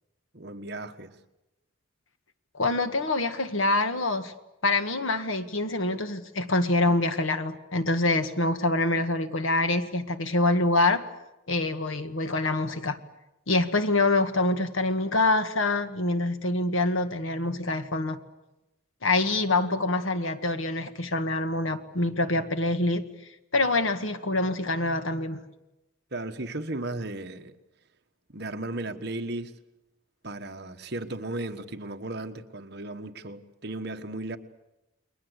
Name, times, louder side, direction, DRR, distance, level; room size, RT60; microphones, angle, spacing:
voice 1, 0.3-1.1 26.1-27.6 28.3-29.5 30.2-34.4, right 2 dB, 50° right, 1.5 m, -35 dB
voice 2, 2.5-4.3 4.6-11.1 11.5-13.0 13.5-18.2 19.0-23.1 23.5-25.4, left 2 dB, 75° left, 1.8 m, -25 dB
30.0 x 21.5 x 8.2 m
head